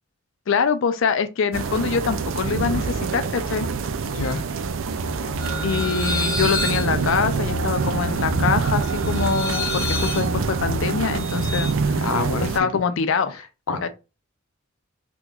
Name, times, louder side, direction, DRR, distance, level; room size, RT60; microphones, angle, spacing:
voice 1, 0.5-3.7 5.6-12.0 12.5-13.4 13.8-13.9, left 5 dB, 60° left, 0.4 m, -24 dB
sound 1, 1.5-12.6, right 5 dB, 60° right, 0.4 m, -26 dB
voice 2, 4.0-4.5 12.0-12.5 12.9-13.9, left 3 dB, 90° left, 0.8 m, -28 dB
sound 2, 4.7-12.4, left 1 dB, 10° right, 1.4 m, -32 dB
sound 3, 5.4-11.7, left 2 dB, 15° left, 0.8 m, -30 dB
3.7 x 2.9 x 2.3 m
head